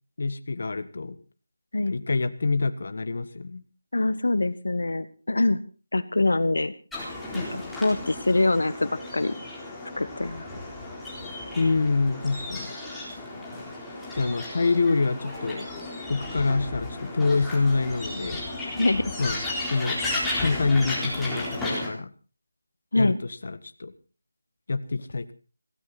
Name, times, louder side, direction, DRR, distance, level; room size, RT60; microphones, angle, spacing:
voice 1, 0.2-1.2 1.9-3.6 11.6-12.7 14.1-15.7 16.1-18.4 19.2-19.4 19.7-20.0 20.4-22.1 23.0-23.9 24.7-25.3, left 3 dB, 55° left, 11 dB, 1.6 m, -26 dB
voice 2, 3.9-5.6 5.9-6.7 7.3-9.3 10.0-10.4 18.8-19.0 22.9-23.2, left 2 dB, 80° left, 13 dB, 1.5 m, -24 dB
sound 1, 6.9-21.9, left 2 dB, 5° left, 4.0 m, -34 dB
17.5 x 17.5 x 4.2 m, 0.35 s
figure-of-eight pair, 170°, 0 cm